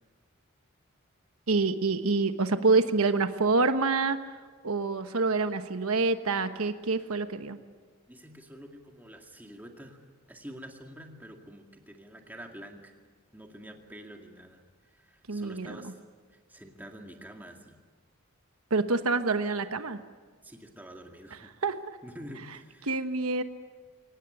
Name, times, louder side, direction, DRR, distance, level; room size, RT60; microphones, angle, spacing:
voice 1, 1.5-4.2 4.6-7.6 15.3-15.8 18.7-20.0 21.6-22.0 22.9-23.4, right 3 dB, 90° right, 9 dB, 1.2 m, -26 dB
voice 2, 8.1-10.0 10.3-12.9 13.3-16.0 16.3-17.8 20.4-21.5 22.0-23.0, equal, 10° right, 3 dB, 2.1 m, -47 dB
24.0 x 18.5 x 9.9 m, 1.5 s
head